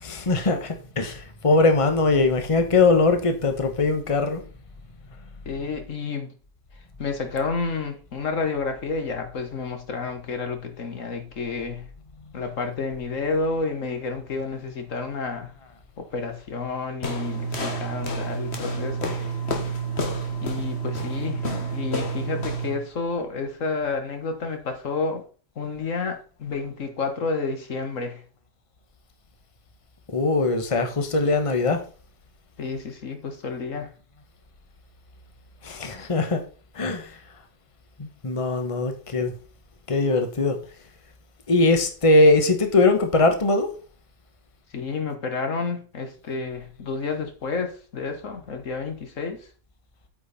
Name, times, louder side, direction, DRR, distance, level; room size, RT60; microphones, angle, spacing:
voice 1, 0.0-4.4 30.1-31.8 35.6-36.4 36.7-37.1 38.0-39.3 39.9-40.6 41.5-43.7, left 3 dB, 25° left, 1.2 m, -21 dB
voice 2, 5.5-6.3 7.0-11.9 12.3-15.5 16.0-19.2 20.4-25.3 25.6-28.2 32.6-33.9 44.7-49.5, left 4 dB, 80° left, 1.7 m, -30 dB
sound 1, 17.0-22.8, right 2 dB, 55° left, 1.6 m, -29 dB
8.6 x 6.1 x 4.2 m
omnidirectional pair, 1.3 m